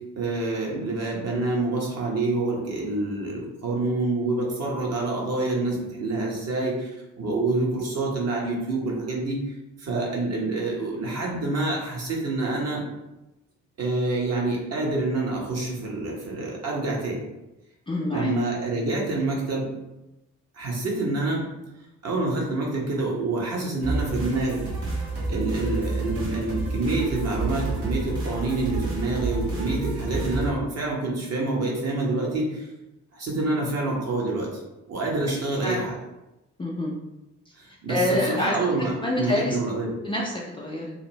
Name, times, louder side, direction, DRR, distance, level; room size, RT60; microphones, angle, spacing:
voice 1, 0.2-6.9 7.2-9.4 9.8-12.8 13.8-17.2 18.1-19.7 20.5-21.5 22.0-24.7 25.3-32.7 33.1-34.6 34.9-36.0 37.6-39.9, right 2 dB, 40° right, -2 dB, 1.1 m, -27 dB
voice 2, 17.9-18.3 35.3-35.8 36.6-36.9 37.9-39.6 40.0-40.9, left 1 dB, 15° left, -4 dB, 0.5 m, -27 dB
sound 1, 23.8-30.5, right 3 dB, 65° right, 1.2 m, -29 dB
2.8 x 2.5 x 3.0 m, 0.97 s
figure-of-eight pair, 40°, 39 cm